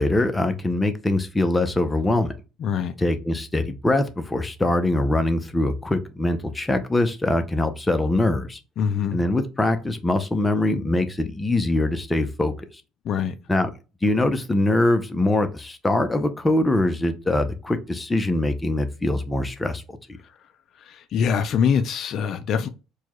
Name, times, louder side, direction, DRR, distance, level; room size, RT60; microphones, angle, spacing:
voice 1, 0.0-2.3 3.0-8.6 9.1-12.5 13.5-13.7 14.0-19.8, left 2 dB, 15° left, 0.6 m, -23 dB
voice 2, 2.6-2.9 8.8-9.2 13.0-13.4 20.8-22.7, left 7 dB, 60° left, 0.4 m, -24 dB
4.4 x 2.3 x 3.0 m
supercardioid pair, 95°, 0 cm